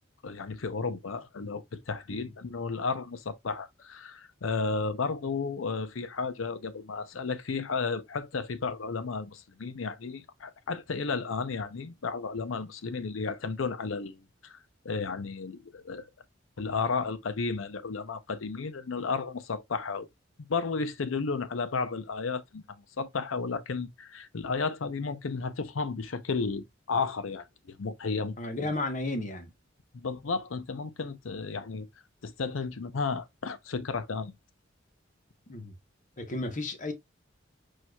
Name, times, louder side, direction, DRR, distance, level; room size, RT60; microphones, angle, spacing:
voice 1, 0.2-14.6 14.8-16.0 16.6-20.1 20.5-22.6 23.0-28.7 29.9-31.9 32.2-34.3, left 4 dB, 85° left, 0.6 m, -33 dB
voice 2, 28.4-29.5 35.5-35.7 36.2-36.9, left 2 dB, 40° left, 0.9 m, -33 dB
4.7 x 4.4 x 2.3 m
head